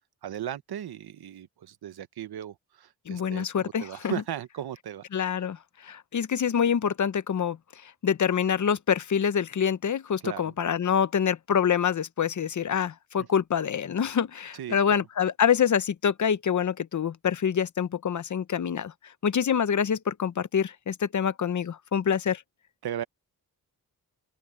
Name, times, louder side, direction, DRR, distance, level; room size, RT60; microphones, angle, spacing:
voice 1, 0.2-5.0 10.2-10.5 13.2-13.3 14.5-15.0 22.8-23.0, right 10 dB, 90° right, 1.0 m, -37 dB
voice 2, 3.1-4.1 5.1-7.6 7.8-18.9 19.2-22.4, left 7 dB, 50° left, 0.8 m, -26 dB
open air
wide cardioid pair, 115°, 37 cm